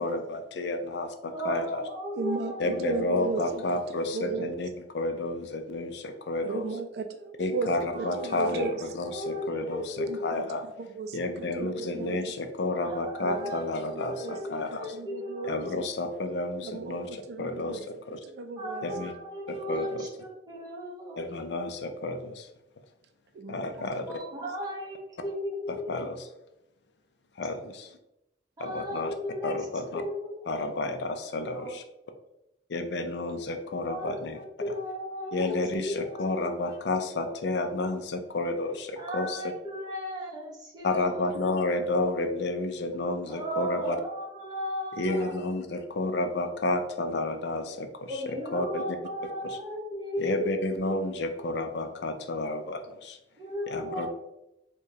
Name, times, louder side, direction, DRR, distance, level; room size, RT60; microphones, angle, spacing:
voice 1, 0.0-1.8 2.6-6.7 7.4-10.6 11.1-14.9 15.4-18.2 18.8-19.1 19.5-20.1 21.2-22.5 23.5-24.1 25.9-26.3 27.4-28.0 28.6-29.1 29.4-30.0 30.5-31.8 32.7-34.4 35.3-39.4 40.8-44.0 45.0-48.8 50.2-53.2 53.7-54.1, left 2 dB, 75° left, 7 dB, 0.5 m, -31 dB
voice 2, 1.3-3.0 7.9-8.7 9.1-10.4 12.8-15.7 18.6-21.3 24.1-25.0 25.2-26.0 28.6-29.7 29.9-30.3 31.3-31.7 33.9-35.6 35.9-36.5 39.0-41.2 41.5-41.8 43.3-45.4 48.1-50.4 53.4-54.1, equal, 20° right, -4 dB, 0.9 m, -36 dB
voice 3, 2.1-3.6 3.9-4.6 6.4-8.7 10.1-10.2 11.0-12.2 13.2-13.5 13.9-14.4 14.7-15.8 16.6-17.8 18.1-19.1 23.3-23.9, right 4 dB, 65° right, 7 dB, 0.3 m, -35 dB
4.7 x 2.2 x 2.7 m, 0.86 s
head